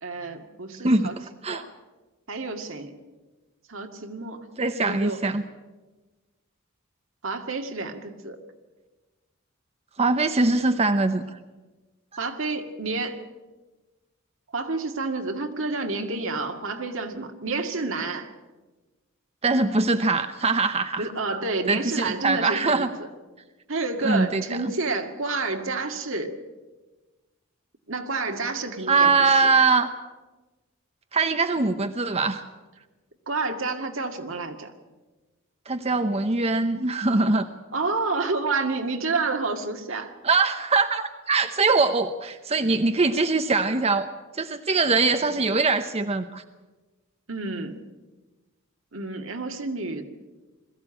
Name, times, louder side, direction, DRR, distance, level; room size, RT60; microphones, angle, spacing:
voice 1, 0.0-1.2 1.5-1.7 2.3-2.9 3.7-4.4 4.8-5.2 7.2-8.4 12.2-13.2 14.5-18.3 21.0-23.1 23.7-26.3 27.9-29.5 33.3-34.7 37.7-40.1 47.3-47.8 48.9-50.1, right 3 dB, 75° right, 5 dB, 2.1 m, -29 dB
voice 2, 4.6-5.4 10.0-11.4 19.4-21.1 21.7-22.9 24.0-24.4 28.9-29.9 31.1-32.4 35.7-37.5 40.2-44.1 44.3-46.4, right 3 dB, 30° right, 8 dB, 0.8 m, -22 dB
21.5 x 15.0 x 8.9 m, 1.2 s
head